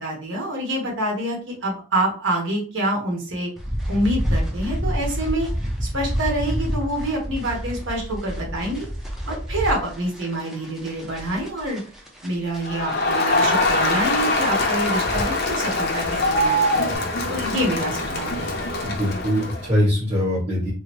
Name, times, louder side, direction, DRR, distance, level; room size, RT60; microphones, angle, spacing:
voice 1, 0.0-3.5 3.9-5.5 5.8-8.9 9.3-11.8 12.2-16.9 17.3-18.5, right 1 dB, 65° right, -1 dB, 1.2 m, -26 dB
sound 1, 3.6-17.0, equal, ahead, 0.5 m, -30 dB
Crowd, 12.6-19.7, left 2 dB, 50° left, 0.6 m, -23 dB
voice 2, 18.8-20.7, equal, 35° right, -10 dB, 1.7 m, -22 dB
3.8 x 2.0 x 3.0 m, 0.39 s
head